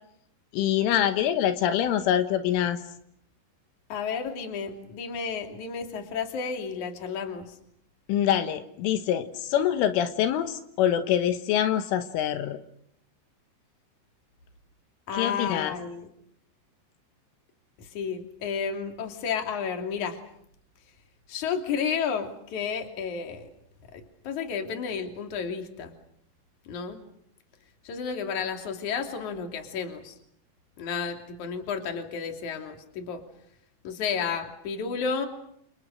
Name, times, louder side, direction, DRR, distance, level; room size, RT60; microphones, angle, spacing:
voice 1, 0.5-2.8 8.1-12.6 15.1-15.8, left 10 dB, 80° left, 8 dB, 3.8 m, -25 dB
voice 2, 3.9-7.6 15.1-16.1 17.8-20.2 21.3-23.5 23.9-25.9 26.7-27.0 27.8-30.2 30.8-33.2 33.8-35.3, left 6 dB, 45° left, 5 dB, 3.7 m, -32 dB
29.0 x 29.0 x 6.5 m, 0.70 s
omnidirectional pair, 5.7 m